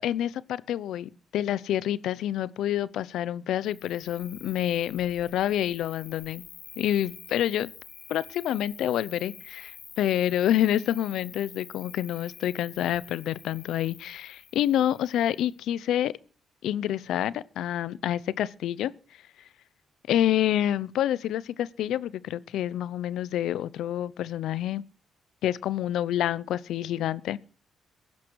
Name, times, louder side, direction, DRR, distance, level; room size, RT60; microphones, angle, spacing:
voice 1, 0.0-6.4 6.8-7.7 8.1-16.1 16.6-18.9 20.1-24.8 25.4-27.4, left 11 dB, 85° left, 0.7 m, -28 dB
Cricket, 3.6-15.6, left 6 dB, 50° left, 2.6 m, -48 dB
16.0 x 11.5 x 4.7 m
cardioid pair, 120°, 0 cm